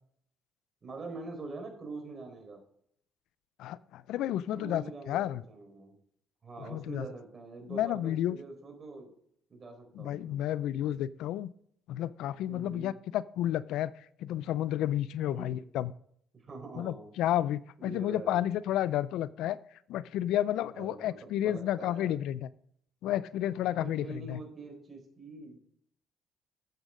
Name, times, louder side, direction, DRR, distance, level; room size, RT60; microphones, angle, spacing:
voice 1, 0.8-2.6 4.5-6.0 6.4-9.1 9.5-10.4 12.5-12.9 15.3-15.6 16.4-17.1 17.8-18.5 20.7-21.2 21.4-22.1 23.8-25.6, right 3 dB, 40° right, 4 dB, 4.3 m, -44 dB
voice 2, 3.6-5.4 6.6-7.0 7.7-8.4 10.0-11.5 11.9-13.9 14.2-15.9 16.8-19.6 19.9-22.5 23.0-24.4, left 12 dB, 75° left, 19 dB, 0.4 m, -31 dB
11.5 x 8.1 x 3.7 m, 0.65 s
supercardioid pair, 70°, 0 cm